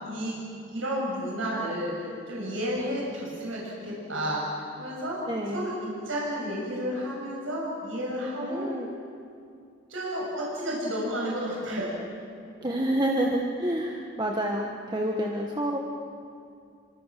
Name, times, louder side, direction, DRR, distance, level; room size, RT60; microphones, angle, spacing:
voice 1, 0.0-0.4 0.7-4.4 4.8-5.2 5.5-8.7 9.9-12.0, equal, 75° right, -4 dB, 7.1 m, -31 dB
voice 2, 5.3-5.7 8.4-8.9 12.6-15.8, right 1 dB, 20° right, 0 dB, 1.6 m, -28 dB
27.5 x 25.0 x 7.7 m, 2.5 s
head